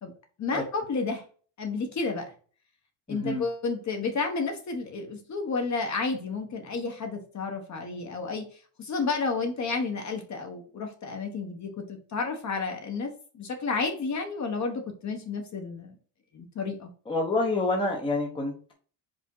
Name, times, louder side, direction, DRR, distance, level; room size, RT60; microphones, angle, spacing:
voice 1, 0.4-1.2 1.6-2.3 3.1-8.5 8.8-16.0 16.3-16.9, left 4 dB, 35° left, 4 dB, 1.3 m, -31 dB
voice 2, 3.1-3.4 17.1-18.7, left 2 dB, 10° left, 0 dB, 1.0 m, -28 dB
5.1 x 3.5 x 5.4 m, 0.41 s
cardioid pair, 145°, 49 cm